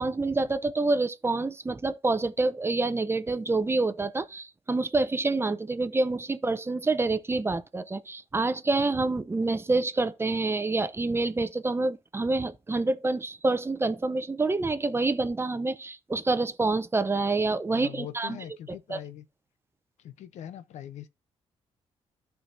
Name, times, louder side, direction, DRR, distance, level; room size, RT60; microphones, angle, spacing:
voice 1, 0.0-18.4 18.9-19.0, right 3 dB, 20° right, 0.7 m, -27 dB
voice 2, 17.7-19.2 20.0-21.1, left 11 dB, 80° left, 0.7 m, -42 dB
12.5 x 4.6 x 2.7 m
cardioid pair, 85°, 12 cm